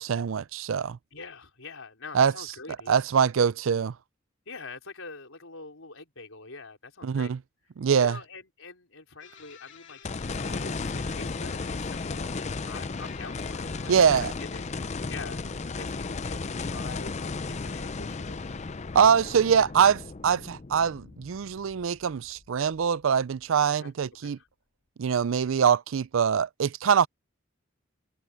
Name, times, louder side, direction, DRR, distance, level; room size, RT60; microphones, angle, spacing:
voice 1, 0.0-1.0 2.1-2.3 2.9-3.9 7.0-7.4 7.8-8.1 13.9-14.3 18.9-24.4 25.0-27.1, right 7 dB, 70° right, 0.4 m, -23 dB
voice 2, 1.1-3.0 4.5-7.3 7.9-18.5 21.4-21.5 23.7-23.9 24.2-24.5, left 4 dB, 80° left, 4.4 m, -45 dB
sound 1, 9.2-15.7, left 9 dB, 60° left, 3.0 m, -51 dB
sound 2, 10.0-22.4 22.8-22.9 26.3-26.4, left 4 dB, 35° left, 0.5 m, -34 dB
head